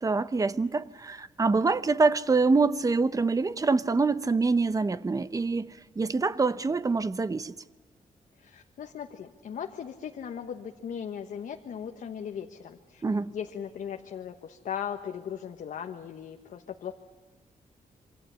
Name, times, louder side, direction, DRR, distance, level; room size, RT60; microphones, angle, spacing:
voice 1, 0.0-7.5 13.0-13.3, right 3 dB, 25° right, 0.8 m, -25 dB
voice 2, 8.4-13.0 13.3-16.9, left 8 dB, 75° left, 1.3 m, -38 dB
27.5 x 24.5 x 7.1 m
wide cardioid pair, 120°, 14 cm